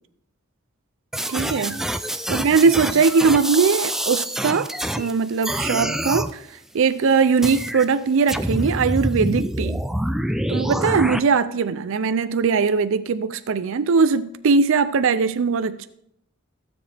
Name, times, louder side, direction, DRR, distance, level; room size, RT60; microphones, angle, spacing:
sound 1, 1.1-5.1 5.4-6.3 7.4-7.8 8.3-11.2, right 1 dB, ahead, 0.3 m, -26 dB
voice 1, 1.3-1.8 2.3-4.7 4.9-6.4 6.7-9.8 10.5-15.9, right 5 dB, 65° right, 0.4 m, -20 dB
15.5 x 7.1 x 3.4 m
head